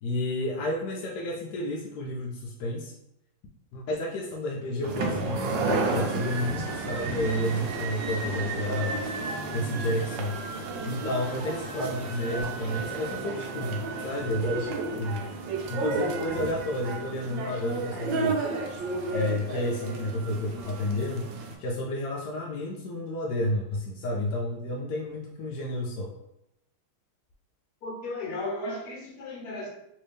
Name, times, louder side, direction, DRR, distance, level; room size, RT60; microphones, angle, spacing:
voice 1, 0.0-2.9 3.7-9.1 9.5-10.4 10.8-15.3 15.7-18.4 19.1-21.3 21.6-26.1, left 1 dB, 80° left, -1 dB, 0.9 m, -31 dB
sound 1, 4.8-21.6, right 3 dB, 70° right, 1.2 m, -32 dB
voice 2, 27.8-29.7, left 2 dB, 55° left, -1 dB, 1.2 m, -35 dB
3.3 x 2.7 x 3.4 m, 0.82 s
omnidirectional pair, 2.3 m